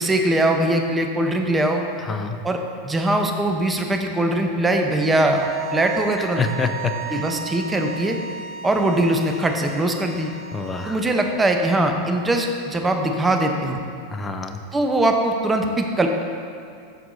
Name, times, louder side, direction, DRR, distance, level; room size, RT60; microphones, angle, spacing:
voice 1, 0.0-1.8 2.4-2.6 2.8-6.4 7.1-8.2 8.6-10.3 10.9-13.8 14.7-16.1, right 1 dB, 15° right, 3 dB, 0.8 m, -21 dB
voice 2, 2.0-2.4 6.2-7.2 10.5-11.0 14.1-14.6, left 4 dB, 20° left, 7 dB, 0.6 m, -27 dB
sound 1, 5.1-11.2, right 7 dB, 45° right, 0.8 m, -35 dB
13.5 x 4.6 x 2.7 m, 2.4 s
hypercardioid pair, 100°, 0 cm